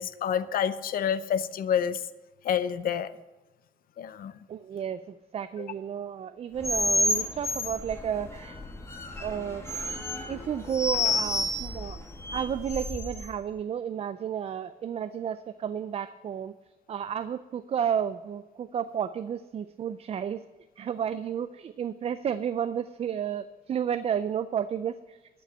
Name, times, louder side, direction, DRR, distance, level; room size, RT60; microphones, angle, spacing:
voice 1, 0.0-2.0 2.4-3.1 4.0-4.4 5.6-5.7, left 8 dB, 65° left, 15 dB, 0.6 m, -28 dB
voice 2, 4.5-5.0 5.3-8.6 9.2-9.6 10.3-12.0 12.3-16.5 16.9-20.4 20.8-25.2, right 8 dB, 40° right, 13 dB, 0.4 m, -32 dB
sound 1, 6.6-13.3, left 1 dB, 15° left, 1.4 m, -30 dB
12.0 x 5.3 x 8.6 m, 1.1 s
cardioid pair, 140°, 16 cm